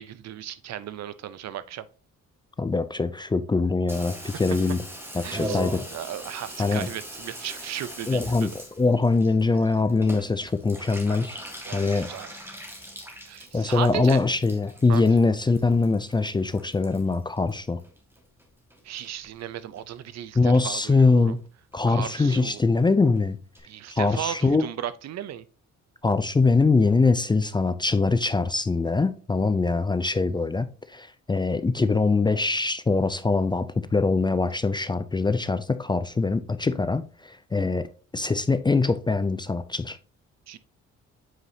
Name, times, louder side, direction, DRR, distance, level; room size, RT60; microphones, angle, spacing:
voice 1, 0.0-1.8 4.3-4.4 5.2-5.6 5.9-8.5 11.6-12.3 13.3-14.2 14.9-15.0 18.8-21.4 21.9-22.6 23.6-25.4 40.5-40.6, right 11 dB, 60° right, 0.6 m, -35 dB
voice 2, 2.6-4.8 5.1-5.8 6.6-6.9 8.1-11.4 11.7-12.1 13.5-17.8 20.4-21.4 21.7-23.4 23.9-24.6 26.0-33.7 33.9-37.9 38.1-40.0, left 3 dB, 15° left, 0.4 m, -23 dB
Water tap faucet / Bathtub (filling or washing), 3.9-18.4 18.7-19.4 19.8-19.9 20.1-20.2 20.4-20.8 21.0-21.1 21.4-21.5 21.7-21.8 22.1-22.2 22.4-22.5 22.8-22.9 23.2-23.3 23.6-23.7, right 1 dB, 10° right, 1.8 m, -40 dB
7.8 x 4.8 x 2.8 m
cardioid pair, 90°, 30 cm